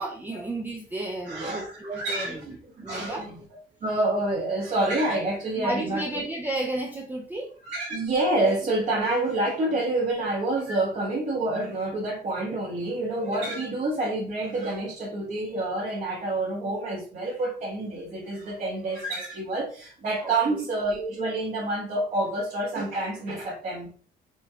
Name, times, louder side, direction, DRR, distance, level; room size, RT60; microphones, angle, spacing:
voice 1, 0.0-3.3 5.6-7.5 20.2-20.6, right 2 dB, 10° right, 1 dB, 0.4 m, -33 dB
voice 2, 1.3-2.4 2.8-3.3 3.8-6.0 7.6-23.9, right 2 dB, 45° right, -5 dB, 1.1 m, -28 dB
4.3 x 2.2 x 2.7 m, 0.43 s
cardioid pair, 110°, 17 cm